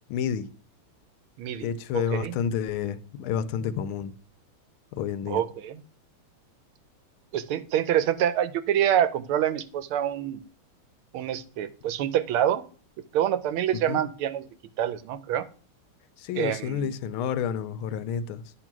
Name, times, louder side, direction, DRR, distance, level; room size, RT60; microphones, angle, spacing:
voice 1, 0.1-0.5 1.6-4.1 4.9-5.4 13.9-14.0 16.2-18.5, left 8 dB, 80° left, 1.4 m, -30 dB
voice 2, 1.4-1.7 1.9-2.3 5.3-5.7 7.3-10.4 11.1-12.6 13.1-14.5 14.8-15.5 16.4-16.9, right 10 dB, 90° right, 1.5 m, -26 dB
10.0 x 3.6 x 5.9 m
omnidirectional pair, 2.3 m